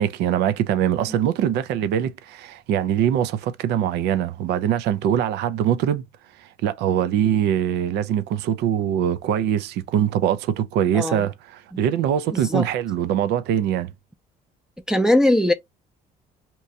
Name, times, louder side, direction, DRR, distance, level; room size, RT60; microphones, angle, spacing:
voice 1, 0.0-6.1 6.4-13.9, right 10 dB, 80° right, 0.5 m, -23 dB
voice 2, 10.9-11.2 12.3-12.7 14.9-15.5, left 1 dB, 5° right, 0.5 m, -19 dB
2.9 x 2.6 x 3.3 m
cardioid pair, 110°, 17 cm